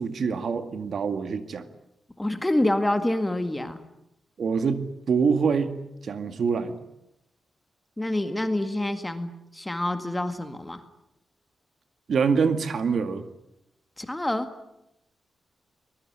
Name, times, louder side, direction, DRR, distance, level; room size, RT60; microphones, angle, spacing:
voice 1, 0.0-1.7 4.4-5.7 6.0-6.8 12.1-13.2, right 5 dB, 55° right, 9 dB, 2.1 m, -25 dB
voice 2, 2.2-3.8 8.0-10.8 14.0-14.5, left 1 dB, 10° left, 8 dB, 1.9 m, -27 dB
24.0 x 21.5 x 10.0 m, 0.84 s
wide cardioid pair, 160°, 0 cm